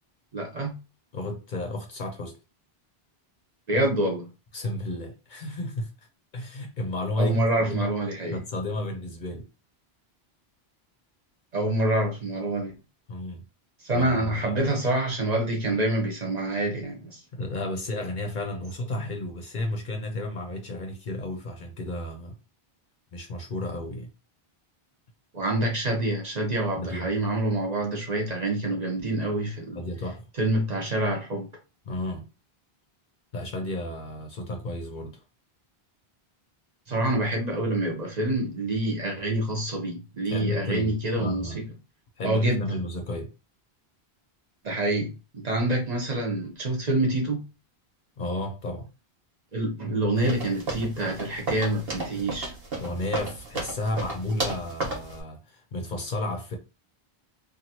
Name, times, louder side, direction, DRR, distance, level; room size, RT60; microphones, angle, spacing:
voice 1, 0.3-0.8 3.7-4.3 7.2-8.4 11.5-12.7 13.8-17.2 25.3-29.8 30.4-31.5 36.9-41.6 42.2-42.6 44.6-47.4 49.5-52.5, right 1 dB, 45° right, 0.8 m, -26 dB
voice 2, 1.1-2.4 4.5-5.9 6.3-7.9 8.3-9.5 13.1-13.4 13.9-14.6 17.3-22.3 23.1-24.1 26.7-27.1 29.7-30.3 31.8-32.3 33.3-35.2 40.3-41.6 42.2-43.3 48.2-48.9 52.8-56.6, left 1 dB, 55° left, 0.6 m, -32 dB
sound 1, 50.2-55.2, right 2 dB, 70° right, 1.3 m, -33 dB
2.9 x 2.4 x 2.7 m
omnidirectional pair, 1.0 m